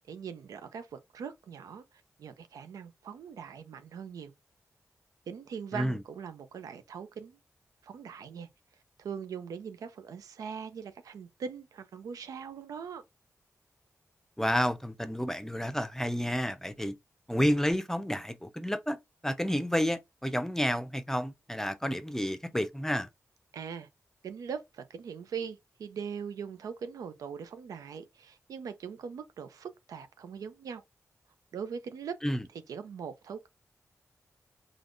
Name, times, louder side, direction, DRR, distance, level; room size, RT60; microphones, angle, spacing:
voice 1, 0.1-1.8 2.2-4.3 5.3-7.4 7.8-8.5 9.0-13.0 23.5-23.9 24.2-30.8 31.5-32.2 32.7-33.5, right 6 dB, 85° right, 0.4 m, -41 dB
voice 2, 14.4-16.9 17.3-19.0 19.2-23.1 32.2-32.5, equal, 5° left, 0.6 m, -30 dB
3.4 x 2.4 x 2.5 m
cardioid pair, 40°, 6 cm